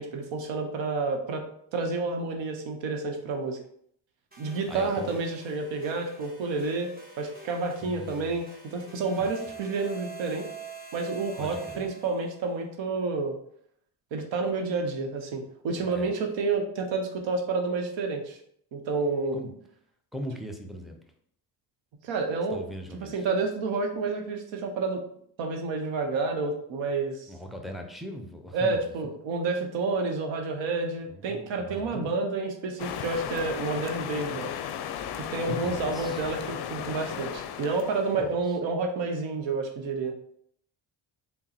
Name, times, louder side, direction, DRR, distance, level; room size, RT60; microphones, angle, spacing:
voice 1, 0.0-1.4 1.7-3.6 4.4-10.4 10.9-13.4 14.1-18.4 18.7-19.4 22.0-22.6 23.0-25.0 25.4-27.3 28.5-34.5 35.2-40.1, right 3 dB, 70° right, 4 dB, 0.8 m, -29 dB
sound 1, 4.3-12.4, right 4 dB, 20° right, 1.0 m, -45 dB
voice 2, 4.5-5.2 7.8-8.4 9.2-9.3 11.4-11.9 15.8-16.1 19.3-19.5 20.1-21.0 22.5-23.3 27.3-28.8 31.1-32.1 35.5-36.3 38.1-38.3, equal, ahead, 3 dB, 0.6 m, -40 dB
sound 2, 32.8-38.3, left 9 dB, 55° left, 0.5 m, -35 dB
3.6 x 2.0 x 4.2 m, 0.67 s
supercardioid pair, 60°, 48 cm